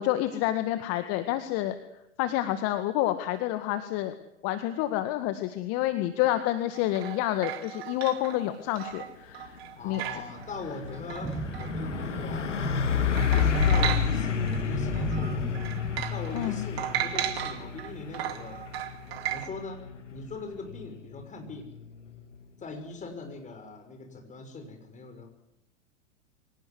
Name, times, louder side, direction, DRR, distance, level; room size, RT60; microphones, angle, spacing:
voice 1, 0.0-1.8 2.2-4.1 4.4-9.6 9.8-10.2 16.3-16.7, left 14 dB, 45° left, 9 dB, 1.9 m, -28 dB
sound 1, 6.7-12.5 12.8-12.9 13.1-14.6 15.0-19.5, right 11 dB, 60° right, 2.5 m, -36 dB
Truck, 9.3-9.6 9.9-22.5, left 7 dB, 85° left, 2.0 m, -31 dB
voice 2, 9.8-11.3 11.6-12.6 13.3-15.7 16.1-18.6 19.3-19.8 20.1-21.7 22.6-25.3, left 3 dB, 20° left, 5 dB, 6.3 m, -41 dB
sound 2, 10.9-16.0, right 3 dB, 10° right, 1.4 m, -36 dB
24.0 x 18.0 x 9.8 m, 0.84 s
hypercardioid pair, 100°, 35 cm